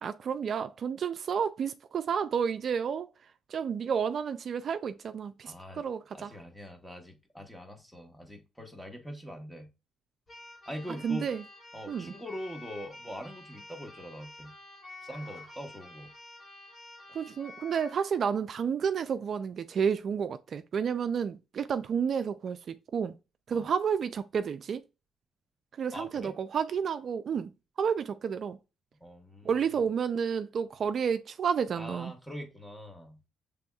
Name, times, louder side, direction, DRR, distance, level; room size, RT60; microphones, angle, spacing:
voice 1, 0.0-3.1 3.5-6.3 11.0-11.4 11.9-12.1 17.1-23.1 23.5-24.8 25.8-27.5 27.8-28.6 29.4-32.1, right 7 dB, 55° right, 0.3 m, -31 dB
voice 2, 5.4-5.8 6.1-9.7 10.7-11.3 11.7-14.5 15.0-16.1 23.5-23.7 25.9-26.3 29.0-29.5 31.8-33.2, equal, 5° left, 1.2 m, -42 dB
Keyboard (musical), 10.3-18.0, left 2 dB, 30° left, 1.6 m, -50 dB
6.8 x 3.4 x 2.3 m
cardioid pair, 90°, 0 cm